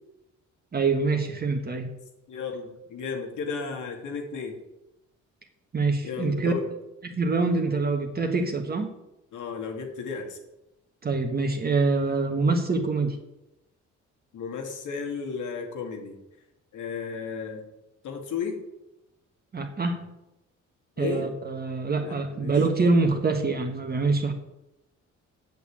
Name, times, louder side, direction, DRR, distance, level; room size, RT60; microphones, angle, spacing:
voice 1, 0.7-1.9 5.7-6.5 7.0-8.9 11.0-13.2 19.5-20.1 21.0-24.3, right 3 dB, 30° right, 3 dB, 1.5 m, -25 dB
voice 2, 2.3-4.5 6.0-6.7 9.3-10.4 14.3-16.2 16.7-17.6 18.0-18.6 21.0-21.3 22.0-22.5, left 5 dB, 75° left, 3 dB, 2.4 m, -34 dB
8.3 x 7.0 x 8.6 m, 0.93 s
cardioid pair, 90°, 30 cm